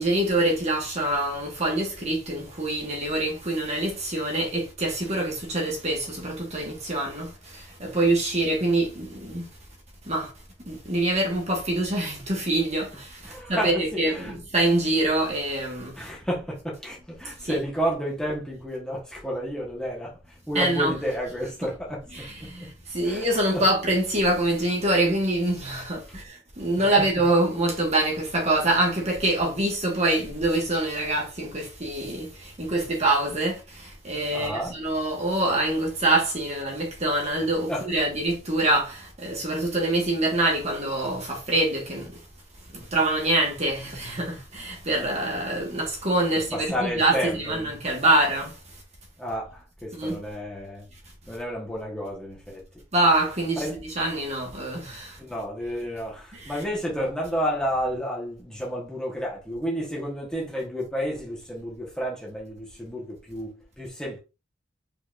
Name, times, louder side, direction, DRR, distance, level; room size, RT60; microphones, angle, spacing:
voice 1, 0.0-7.3 7.8-9.5 10.1-10.3 10.7-12.9 13.5-15.9 17.5-17.6 20.5-20.9 22.1-22.7 22.9-26.0 26.6-32.3 32.6-33.6 34.0-42.1 42.9-48.5 49.9-50.2 52.9-53.6 54.0-55.1, right 2 dB, 35° right, 1.5 m, -25 dB
voice 2, 13.2-14.4 16.0-22.7 23.0-23.3 23.5-23.6 26.8-26.9 34.3-34.8 37.7-37.9 46.5-47.8 49.2-50.9 51.3-52.6 53.5-53.8 55.2-64.2, equal, 5° left, 1.2 m, -31 dB
4.9 x 4.0 x 2.5 m
head